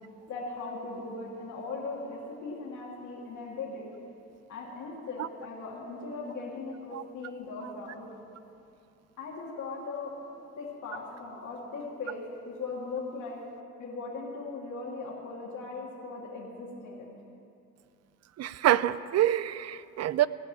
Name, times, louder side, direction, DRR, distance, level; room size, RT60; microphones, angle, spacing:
voice 1, 0.3-3.9 4.5-8.1 9.2-10.1 10.6-13.4 13.8-17.1, left 3 dB, 75° left, -3 dB, 2.3 m, -39 dB
voice 2, 18.4-20.3, right 12 dB, 60° right, 17 dB, 0.5 m, -26 dB
16.5 x 5.6 x 9.9 m, 2.6 s
cardioid pair, 90°, 30 cm